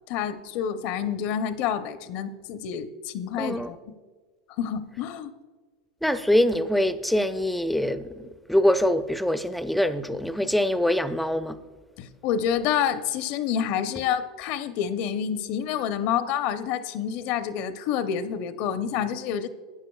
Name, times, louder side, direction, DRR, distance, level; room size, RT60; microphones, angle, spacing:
voice 1, 0.1-3.9 4.6-5.3 12.0-19.5, left 8 dB, 55° left, 0.7 m, -28 dB
voice 2, 3.4-3.7 6.0-11.6, left 1 dB, ahead, 0.5 m, -24 dB
14.0 x 9.5 x 2.3 m
hypercardioid pair, 105°, 3 cm